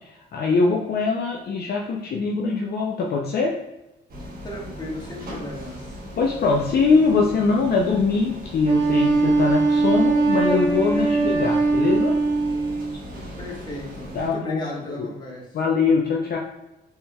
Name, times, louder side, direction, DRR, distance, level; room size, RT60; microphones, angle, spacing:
voice 1, 0.0-3.6 6.2-12.2 14.1-14.7 15.0-15.1 15.5-16.4, left 4 dB, 55° left, -1 dB, 0.6 m, -22 dB
sound 1, 4.1-14.3, equal, 50° right, 1.1 m, -38 dB
voice 2, 4.4-6.0 13.4-15.5, left 1 dB, 20° left, -3 dB, 1.3 m, -35 dB
Wind instrument woodwind instrument, 8.6-13.0, right 3 dB, 70° right, 1.5 m, -21 dB
4.2 x 3.4 x 2.3 m, 0.94 s
cardioid pair, 90°, 20 cm